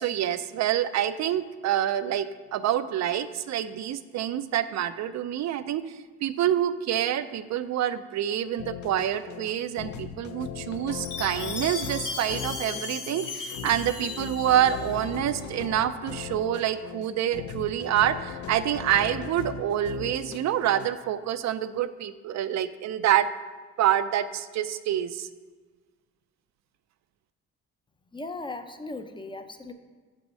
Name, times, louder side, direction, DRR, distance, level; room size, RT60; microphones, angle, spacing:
voice 1, 0.0-23.3 23.8-25.3, right 11 dB, 65° right, 12 dB, 0.5 m, -27 dB
sound 1, 8.6-20.9, left 8 dB, 70° left, 0.6 m, -38 dB
Chime, 11.0-15.2, left 4 dB, 85° left, 1.9 m, -36 dB
voice 2, 28.1-29.7, left 2 dB, 15° left, 8 dB, 0.6 m, -37 dB
6.3 x 6.0 x 5.4 m, 1.4 s
cardioid pair, 90°, 30 cm